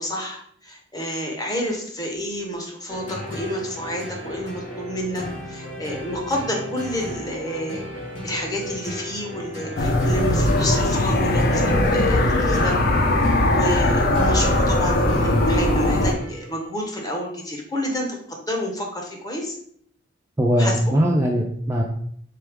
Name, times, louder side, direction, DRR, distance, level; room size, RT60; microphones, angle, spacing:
voice 1, 0.0-7.8 8.2-13.0 13.5-19.6 20.6-20.9, equal, 20° left, 0 dB, 0.9 m, -29 dB
sound 1, 2.9-16.6, equal, 85° left, 1.5 m, -35 dB
sound 2, 9.8-16.1, left 1 dB, 55° left, 0.5 m, -20 dB
voice 2, 20.4-21.8, equal, 15° right, 0 dB, 0.4 m, -20 dB
3.7 x 3.3 x 3.4 m, 0.64 s
head